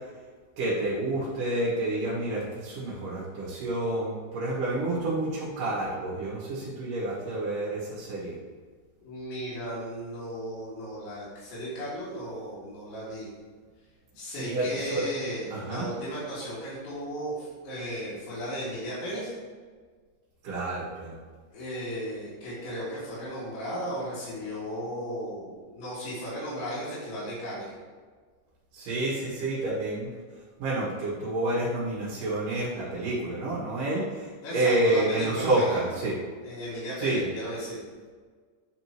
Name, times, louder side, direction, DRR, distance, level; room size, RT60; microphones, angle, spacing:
voice 1, 0.6-8.3 14.4-15.0 15.5-15.9 20.4-21.1 28.7-30.1 30.6-34.3 34.5-36.1 37.0-37.2, right 2 dB, 55° right, -8 dB, 3.1 m, -29 dB
voice 2, 9.0-13.3 14.1-19.3 21.5-27.7 34.4-36.0 36.4-37.8, equal, 75° left, -13 dB, 4.6 m, -35 dB
11.5 x 5.3 x 3.1 m, 1.5 s
omnidirectional pair, 5.3 m